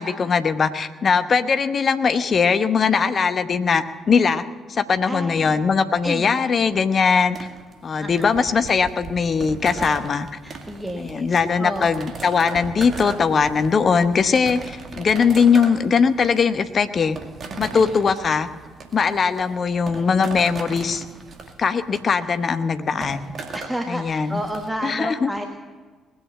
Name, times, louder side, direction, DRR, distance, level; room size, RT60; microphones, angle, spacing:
voice 1, 0.0-4.4 4.7-7.4 7.8-10.3 11.0-17.2 17.6-18.5 18.9-21.0 21.6-23.3 23.9-24.4 24.8-25.3, left 5 dB, 45° left, 11 dB, 0.9 m, -20 dB
voice 2, 5.1-5.5 6.0-6.4 8.0-8.3 10.4-11.3 11.6-11.9 17.7-18.0 23.5-25.5, right 1 dB, 5° right, 4 dB, 1.4 m, -31 dB
sound 1, 7.3-24.7, right 4 dB, 50° right, 2.1 m, -38 dB
20.0 x 8.4 x 8.1 m, 1.4 s
hypercardioid pair, 45°, 0 cm